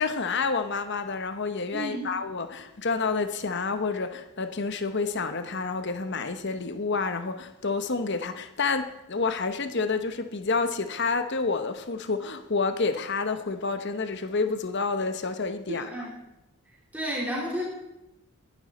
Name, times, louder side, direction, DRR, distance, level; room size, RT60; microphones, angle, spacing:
voice 1, 0.0-15.9, left 4 dB, 50° left, 1.0 m, -29 dB
voice 2, 1.7-2.1 15.7-16.1 16.9-17.6, equal, 10° right, 4.0 m, -31 dB
20.5 x 12.0 x 4.2 m
head